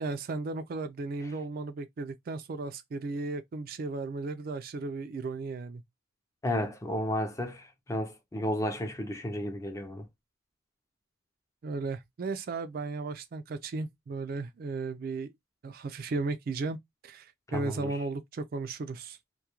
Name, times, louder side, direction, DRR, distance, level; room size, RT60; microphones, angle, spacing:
voice 1, 0.0-5.8 11.6-15.3 15.6-16.8 17.0-19.2, right 3 dB, 50° right, 0.3 m, -35 dB
voice 2, 6.4-10.1 17.5-18.0, left 1 dB, 15° left, 0.4 m, -33 dB
2.3 x 2.1 x 2.9 m
head